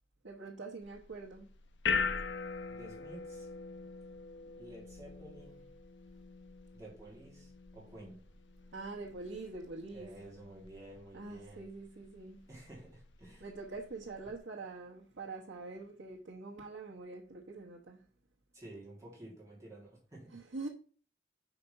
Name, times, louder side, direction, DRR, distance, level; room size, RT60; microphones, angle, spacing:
voice 1, 0.2-1.5 8.7-10.1 11.1-12.4 13.4-18.0 20.3-20.7, right 3 dB, 90° right, 1.2 m, -44 dB
sound 1, 0.8-14.4, left 5 dB, 75° left, 0.5 m, -42 dB
voice 2, 2.7-3.5 4.6-5.7 6.7-8.2 9.9-11.7 12.5-13.5 18.5-20.4, right 1 dB, 15° right, 2.3 m, -51 dB
5.7 x 5.2 x 5.4 m
head